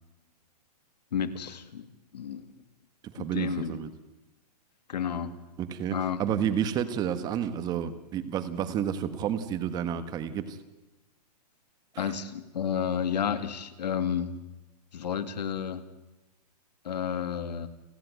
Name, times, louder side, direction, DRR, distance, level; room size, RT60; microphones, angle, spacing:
voice 1, 1.1-1.9 2.1-2.4 3.2-3.9 4.9-5.4 5.9-6.4 12.0-14.4 14.9-15.9 16.8-17.7, left 8 dB, 75° left, 11 dB, 2.2 m, -31 dB
voice 2, 3.0-3.9 5.6-10.6, right 9 dB, 20° right, 12 dB, 1.3 m, -30 dB
30.0 x 10.5 x 9.2 m, 1.1 s
hypercardioid pair, 160°, 21 cm